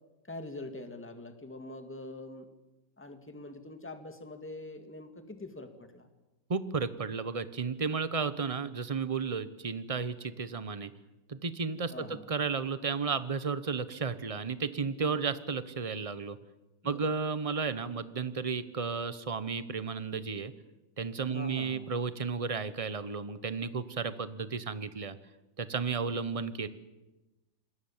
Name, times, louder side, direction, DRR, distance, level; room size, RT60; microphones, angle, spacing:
voice 1, 0.2-2.5 3.0-6.1 11.9-12.2 16.8-17.1 21.3-21.9, left 2 dB, 5° left, 6 dB, 2.0 m, -44 dB
voice 2, 6.5-10.9 11.3-16.4 16.8-20.5 21.0-25.2 25.6-26.7, right 5 dB, 35° right, 13 dB, 0.5 m, -33 dB
27.5 x 21.0 x 7.4 m, 1.1 s
omnidirectional pair, 2.1 m